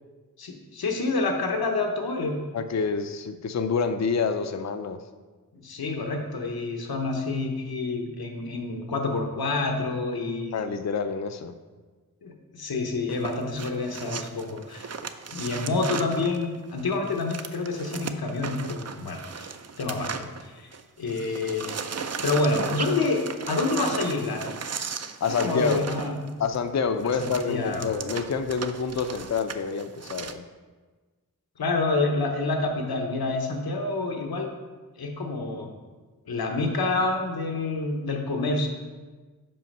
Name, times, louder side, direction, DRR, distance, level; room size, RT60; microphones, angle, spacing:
voice 1, 0.4-2.3 5.5-10.6 12.2-14.9 15.3-20.7 21.0-21.7 22.2-23.2 23.5-24.6 25.4-26.3 27.2-27.9 31.6-34.5 35.0-35.7 36.3-38.7, left 3 dB, 85° left, 3 dB, 1.0 m, -28 dB
voice 2, 2.5-5.0 10.5-11.5 25.2-25.9 26.4-30.4, left 5 dB, 50° left, 9 dB, 0.5 m, -27 dB
sound 1, 13.1-20.8 21.1-30.3, right 5 dB, 45° right, 0.5 m, -36 dB
5.5 x 5.0 x 5.4 m, 1.3 s
cardioid pair, 45°, 36 cm